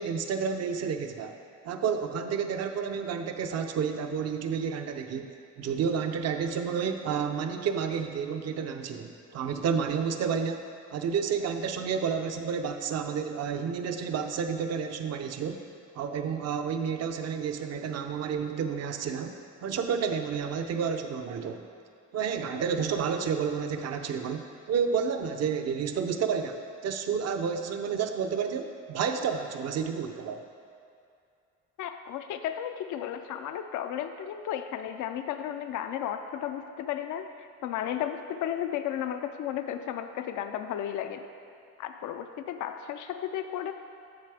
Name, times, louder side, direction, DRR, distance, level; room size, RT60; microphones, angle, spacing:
voice 1, 0.0-1.4 1.6-5.3 5.6-10.7 10.9-15.6 16.0-21.6 22.1-30.4, right 6 dB, 55° right, 6 dB, 0.6 m, -30 dB
voice 2, 31.8-41.2 41.8-43.7, left 10 dB, 75° left, 8 dB, 0.5 m, -34 dB
7.6 x 6.7 x 3.4 m, 2.4 s
cardioid pair, 90°, 30 cm